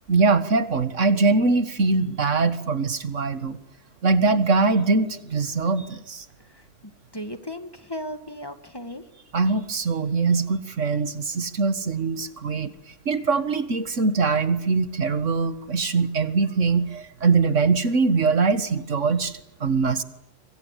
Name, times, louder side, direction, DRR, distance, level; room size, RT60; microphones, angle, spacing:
voice 1, 0.1-3.6 4.0-6.3 9.3-12.7 13.1-20.0, right 4 dB, 85° right, 12 dB, 2.0 m, -22 dB
voice 2, 7.1-9.0, equal, 20° left, 9 dB, 1.9 m, -36 dB
28.0 x 25.0 x 8.3 m, 0.79 s
omnidirectional pair, 1.2 m